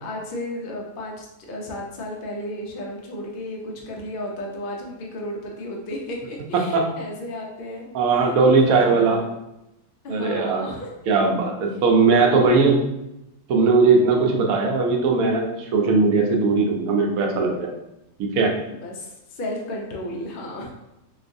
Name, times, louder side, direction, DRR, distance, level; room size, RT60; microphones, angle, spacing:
voice 1, 0.0-7.8 8.1-9.3 10.0-10.9 11.4-11.5 11.7-11.8 12.4-12.7 18.7-20.7, left 1 dB, 55° left, -1 dB, 0.6 m, -33 dB
voice 2, 6.5-6.9 7.9-9.2 10.1-10.7 11.1-12.8 13.5-17.7 18.2-18.6, right 4 dB, 75° right, 1 dB, 1.0 m, -19 dB
3.8 x 2.4 x 2.5 m, 0.89 s
omnidirectional pair, 1.5 m